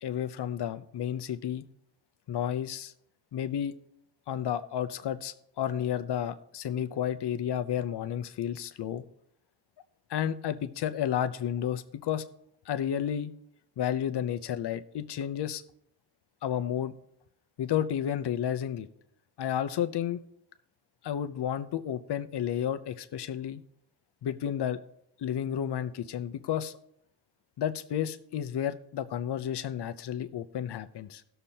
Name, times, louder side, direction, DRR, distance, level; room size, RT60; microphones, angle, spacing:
voice 1, 0.0-1.6 2.3-2.9 3.3-3.7 4.3-9.0 10.1-12.2 12.7-13.3 13.8-15.6 16.4-16.9 17.6-18.9 19.4-20.2 21.0-23.6 24.2-24.8 25.2-26.7 27.6-31.2, left 10 dB, 75° left, 11 dB, 0.7 m, -31 dB
18.5 x 6.7 x 2.9 m, 0.74 s
wide cardioid pair, 165°, 40 cm